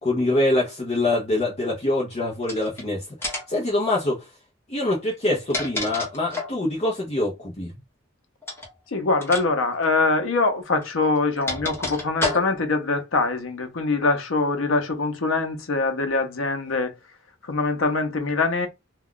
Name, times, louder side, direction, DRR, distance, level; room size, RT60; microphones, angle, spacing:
voice 1, 0.0-4.3 4.7-7.7, left 1 dB, 30° left, 0.6 m, -24 dB
sound 1, 2.4-2.8 3.2-3.6 5.1-6.6 8.4-8.7 9.2-9.5 9.7-9.8 10.8-12.8, left 2 dB, 10° left, 0.9 m, -30 dB
voice 2, 8.9-16.9 17.4-18.7, left 3 dB, 80° left, 0.7 m, -23 dB
2.3 x 2.2 x 3.6 m
head